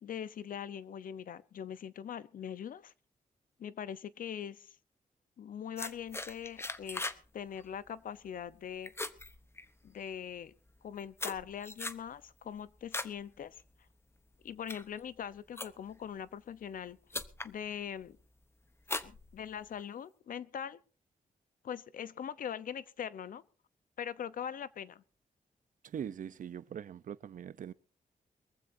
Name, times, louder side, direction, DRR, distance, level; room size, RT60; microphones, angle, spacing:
voice 1, 0.0-2.9 3.6-4.8 5.4-7.0 7.3-8.9 9.8-10.5 10.8-13.6 14.4-17.0 17.4-18.2 19.0-20.8 21.6-23.4 24.0-25.0, left 8 dB, 80° left, 0.9 m, -42 dB
sound 1, 5.8-7.3 7.6-7.9 8.3-8.6 8.8-10.0 10.7-13.2 13.6-13.9 14.4-16.0 16.7-16.8 17.1-17.5 18.0-18.4 18.8-19.8, left 2 dB, 20° left, 0.9 m, -40 dB
voice 2, 25.9-27.7, right 8 dB, 70° right, 0.8 m, -42 dB
23.0 x 15.0 x 2.7 m
wide cardioid pair, 135°, 14 cm